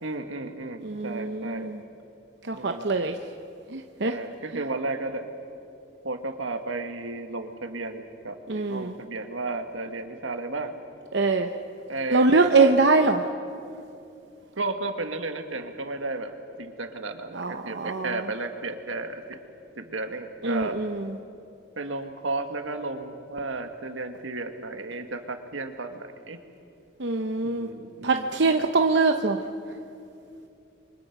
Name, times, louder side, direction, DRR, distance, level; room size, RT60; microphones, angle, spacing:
voice 1, 0.0-1.7 2.5-2.9 4.1-5.3 6.0-10.8 11.9-12.3 12.6-12.7 14.6-19.2 19.8-20.8 21.8-26.4 27.4-28.7, right 2 dB, 85° right, 6 dB, 1.8 m, -33 dB
voice 2, 0.8-1.8 2.4-3.2 3.7-4.2 4.5-4.6 8.5-8.9 11.1-11.5 12.1-13.2 17.3-18.2 20.4-21.1 27.0-27.7 28.0-29.4, right 3 dB, 60° right, 5 dB, 0.8 m, -23 dB
28.5 x 24.0 x 6.0 m, 2.6 s
head